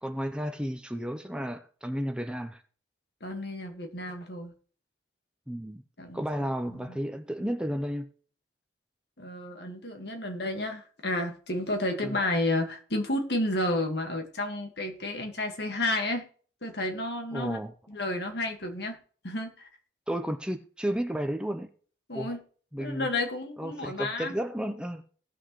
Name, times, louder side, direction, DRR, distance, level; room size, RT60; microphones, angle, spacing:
voice 1, 0.0-2.6 5.5-5.8 6.1-8.1 12.0-12.2 17.3-17.7 20.1-21.7 22.1-22.3 22.7-23.1 23.6-25.0, equal, 5° right, 0.6 m, -32 dB
voice 2, 3.2-4.5 6.0-6.2 6.7-7.0 9.2-16.2 16.6-17.6 17.9-19.0 19.2-19.7 22.1-22.4 22.8-24.3, left 1 dB, 65° left, 1.8 m, -31 dB
18.0 x 6.3 x 3.1 m
head